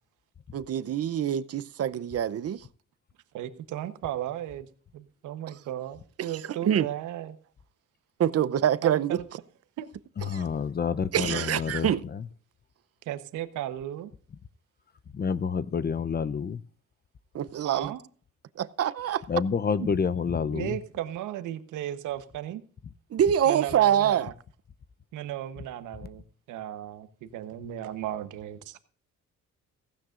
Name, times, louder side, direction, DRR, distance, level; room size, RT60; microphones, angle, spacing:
voice 1, 0.5-2.6 6.2-6.3 6.6-6.9 8.2-9.2 10.3-10.4 11.1-12.0 17.3-17.9 18.6-19.2 23.1-24.3, right 10 dB, 50° right, 0.7 m, -25 dB
voice 2, 3.3-4.7 4.9-7.4 8.8-9.2 9.8-9.9 13.1-14.1 17.6-18.0 19.8-19.9 20.5-22.6 23.5-24.3 25.1-26.2 26.5-28.8, right 12 dB, 90° right, 1.1 m, -35 dB
voice 3, 10.2-12.3 15.1-16.6 19.3-20.8, left 6 dB, 30° left, 0.6 m, -28 dB
16.0 x 15.0 x 2.5 m
cardioid pair, 90°, 30 cm